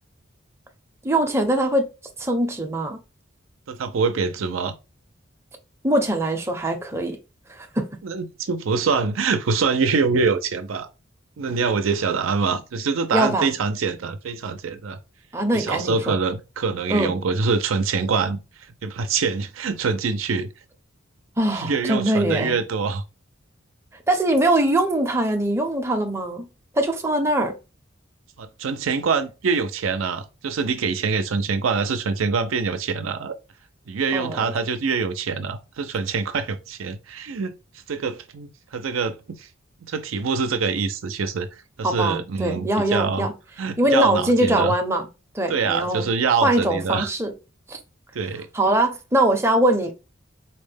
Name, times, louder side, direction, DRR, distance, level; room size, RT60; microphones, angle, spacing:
voice 1, 1.0-1.9 2.2-3.0 5.8-7.2 7.5-7.9 13.1-13.5 15.3-16.2 16.9-17.1 21.4-22.5 24.1-26.5 26.7-27.6 34.1-34.5 41.8-43.3 43.8-45.1 45.3-46.1 46.4-47.3 47.7-47.8 48.3-49.9, right 1 dB, 15° right, 0.6 m, -22 dB
voice 2, 3.7-4.7 8.0-10.9 11.4-15.0 15.5-18.4 18.8-20.5 21.5-23.0 28.4-33.3 33.9-37.5 37.9-39.5 39.8-41.5 41.8-43.2 43.6-44.7 45.5-47.1 48.1-48.5, right 5 dB, 80° right, 0.5 m, -24 dB
4.1 x 2.1 x 3.3 m
head